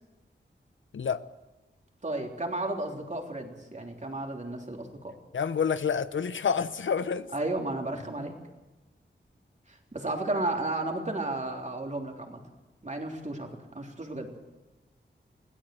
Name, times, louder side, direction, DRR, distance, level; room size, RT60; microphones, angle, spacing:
voice 1, 2.0-5.1 7.3-8.3 9.7-12.4 12.8-14.3, right 2 dB, 40° right, 2 dB, 3.6 m, -33 dB
voice 2, 5.3-7.3, left 6 dB, 85° left, 14 dB, 0.8 m, -28 dB
22.0 x 16.5 x 7.9 m, 1.1 s
wide cardioid pair, 75°, 19 cm